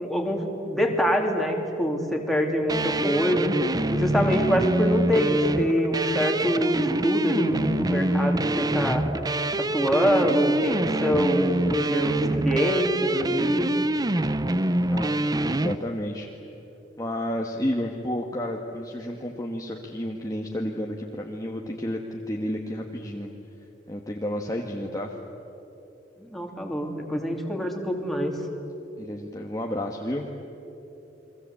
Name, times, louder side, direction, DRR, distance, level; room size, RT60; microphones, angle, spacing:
voice 1, 0.0-3.5 3.9-9.1 9.6-13.7 26.2-28.4, equal, ahead, 1 dB, 3.2 m, -25 dB
sound 1, 2.7-15.8, right 1 dB, 20° right, 0.7 m, -25 dB
voice 2, 14.9-16.3 17.0-23.3 23.9-25.1 29.0-30.3, left 1 dB, 20° left, 1 dB, 1.5 m, -31 dB
29.5 x 23.0 x 8.4 m, 3.0 s
head